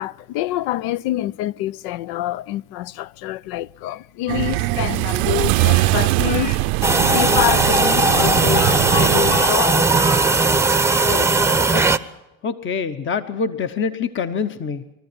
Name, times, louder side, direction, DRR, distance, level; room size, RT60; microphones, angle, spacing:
voice 1, 0.0-6.6 7.1-9.9 11.1-11.3, left 14 dB, 70° left, 0.7 m, -26 dB
sound 1, 4.3-9.5, right 20 dB, 75° right, 0.7 m, -21 dB
Speech, 5.5-6.6 7.5-10.5, left 4 dB, 50° left, 5.0 m, -32 dB
sound 2, 6.8-12.0, right 3 dB, 5° right, 0.8 m, -17 dB
voice 2, 12.4-14.9, left 5 dB, 30° left, 1.0 m, -25 dB
23.0 x 14.0 x 9.7 m
supercardioid pair, 100°, 39 cm